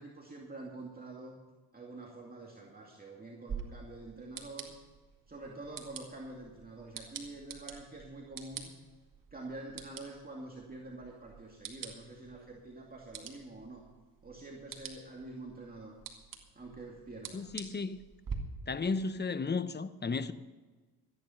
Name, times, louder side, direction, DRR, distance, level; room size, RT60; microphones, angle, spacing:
voice 1, 0.0-1.4 1.7-4.8 5.3-8.8 9.3-13.9 14.2-16.0 16.5-17.4, right 2 dB, 20° right, 2.5 m, -46 dB
sound 1, 3.5-18.4, right 6 dB, 55° right, 2.1 m, -48 dB
voice 2, 17.3-18.0 18.7-20.3, left 4 dB, 25° left, 0.8 m, -34 dB
14.0 x 10.0 x 5.8 m
cardioid pair, 70°, 39 cm